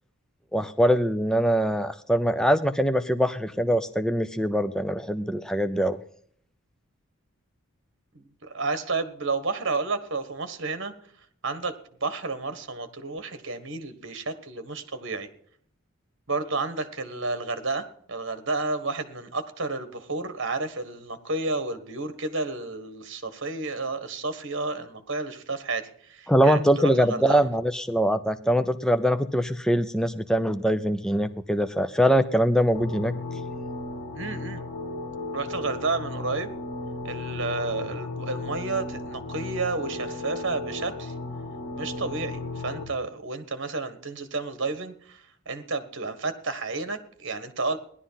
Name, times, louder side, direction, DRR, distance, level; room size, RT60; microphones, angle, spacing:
voice 1, 0.5-6.0 26.3-33.1, equal, 5° left, 9 dB, 0.5 m, -23 dB
voice 2, 8.1-10.9 11.4-11.7 12.0-15.3 16.3-27.5 34.1-34.6 35.3-36.5 37.0-41.1 41.8-47.8, right 3 dB, 55° right, 10 dB, 1.5 m, -31 dB
sound 1, 32.7-42.8, left 2 dB, 40° left, 3.4 m, -35 dB
16.5 x 11.5 x 5.7 m, 0.64 s
head